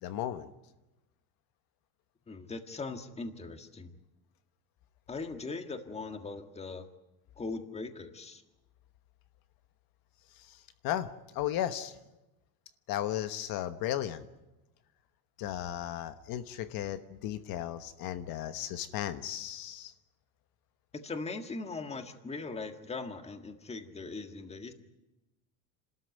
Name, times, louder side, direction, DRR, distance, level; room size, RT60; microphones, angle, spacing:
voice 1, 0.0-0.5 10.3-11.1 11.3-12.0 12.9-14.2 15.4-19.9, left 12 dB, 55° left, 10 dB, 1.2 m, -35 dB
voice 2, 2.3-3.9 5.1-6.9 7.4-8.4 20.9-24.7, left 3 dB, 15° left, 6 dB, 1.7 m, -40 dB
28.0 x 13.5 x 9.4 m, 1.0 s
cardioid pair, 135°, 43 cm